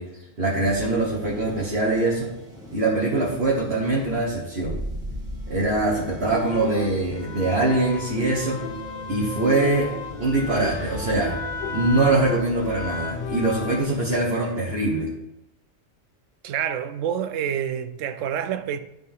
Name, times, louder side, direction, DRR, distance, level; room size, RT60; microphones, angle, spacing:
voice 1, 0.0-2.3 2.7-4.8 5.5-8.6 9.1-9.9 10.2-11.3 11.7-15.1, right 2 dB, 50° right, 1.6 m, -23 dB
sound 1, 0.6-14.5, equal, 5° right, 1.5 m, -39 dB
sound 2, 6.2-13.8, left 5 dB, 85° left, 0.4 m, -34 dB
voice 2, 16.4-18.8, right 9 dB, 70° right, 1.0 m, -27 dB
12.0 x 4.1 x 3.6 m
omnidirectional pair, 1.4 m